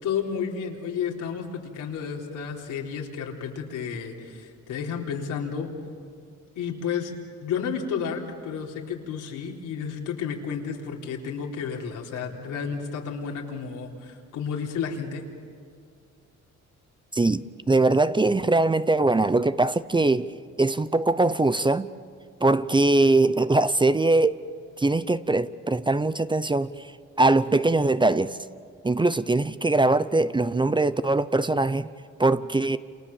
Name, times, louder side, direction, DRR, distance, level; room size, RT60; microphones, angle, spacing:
voice 1, 0.0-5.7 6.6-7.1 7.4-15.2, left 6 dB, 85° left, 3.8 m, -31 dB
voice 2, 17.1-20.3 20.6-21.9 22.4-24.3 24.8-26.7 27.2-28.4 28.8-31.9 32.2-32.8, right 2 dB, 15° right, 0.7 m, -21 dB
29.0 x 28.5 x 7.3 m
cardioid pair, 90°, 30 cm